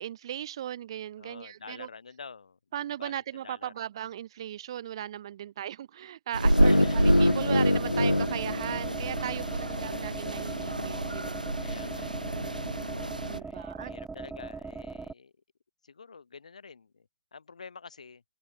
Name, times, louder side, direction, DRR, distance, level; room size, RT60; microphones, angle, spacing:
voice 1, 0.0-1.9 2.7-11.6 13.2-13.9, right 11 dB, 40° right, 1.2 m, -37 dB
voice 2, 1.2-2.6 3.0-3.1 3.4-3.7 6.6-7.0 9.3-9.7 11.6-12.2 13.3-15.3 15.8-18.2, left 5 dB, 60° left, 5.9 m, -48 dB
sound 1, 6.3-13.4, right 1 dB, 85° right, 0.4 m, -30 dB
sound 2, 6.4-9.5, left 1 dB, 90° left, 0.3 m, -25 dB
sound 3, 6.5-15.1, right 4 dB, 5° right, 1.0 m, -40 dB
open air
figure-of-eight pair, 135°, 4 cm